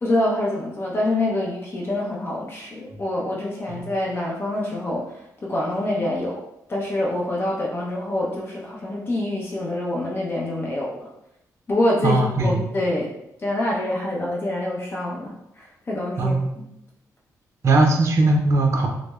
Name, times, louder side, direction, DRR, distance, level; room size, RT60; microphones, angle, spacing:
voice 1, 0.0-6.4 6.7-11.1 11.7-13.1 13.4-16.6, left 1 dB, 35° left, -3 dB, 0.7 m, -26 dB
voice 2, 12.0-12.6 16.2-16.5 17.6-18.9, right 2 dB, 45° right, 1 dB, 0.6 m, -19 dB
6.0 x 2.1 x 2.3 m, 0.85 s
cardioid pair, 95°, 7 cm